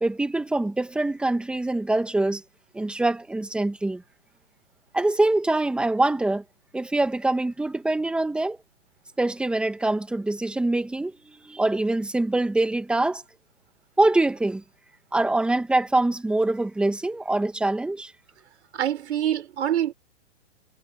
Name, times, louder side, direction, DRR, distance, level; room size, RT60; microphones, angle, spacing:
voice 1, 0.0-2.4 2.7-4.0 4.9-6.4 6.7-8.6 9.2-13.2 14.0-14.6 15.1-18.1, right 2 dB, 5° right, 1.6 m, -24 dB
voice 2, 18.7-19.9, right 11 dB, 60° right, 3.9 m, -25 dB
hypercardioid pair, 155°, 37 cm